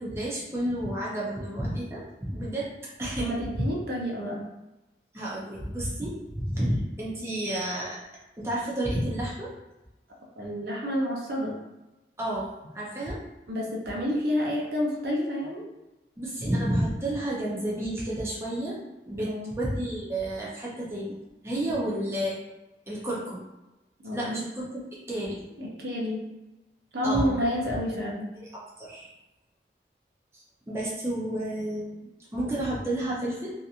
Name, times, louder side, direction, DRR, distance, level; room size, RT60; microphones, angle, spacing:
voice 1, 0.0-2.7 3.0-3.3 5.1-8.0 8.4-9.5 12.2-13.2 16.2-18.8 19.1-21.2 21.4-22.4 22.9-23.4 24.1-25.4 27.0-27.5 28.3-29.1 30.3-33.5, right 1 dB, 15° right, -6 dB, 0.5 m, -31 dB
voice 2, 3.2-4.4 10.4-11.6 13.5-15.7 19.2-19.5 24.0-24.4 25.6-26.3 26.9-28.3, equal, 65° right, -2 dB, 0.6 m, -29 dB
2.7 x 2.4 x 2.4 m, 1.0 s
head